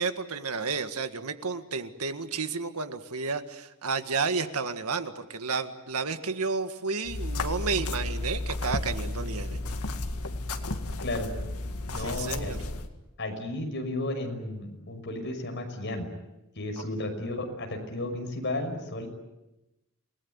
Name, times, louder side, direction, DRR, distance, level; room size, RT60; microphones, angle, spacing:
voice 1, 0.0-9.6 12.0-12.6, right 4 dB, 80° right, 9 dB, 1.8 m, -31 dB
sound 1, 7.0-12.9, left 2 dB, 80° left, 2.1 m, -33 dB
voice 2, 11.9-12.6 13.2-16.1 16.6-19.1, left 2 dB, 55° left, 4 dB, 6.1 m, -33 dB
29.0 x 19.5 x 9.6 m, 0.98 s
head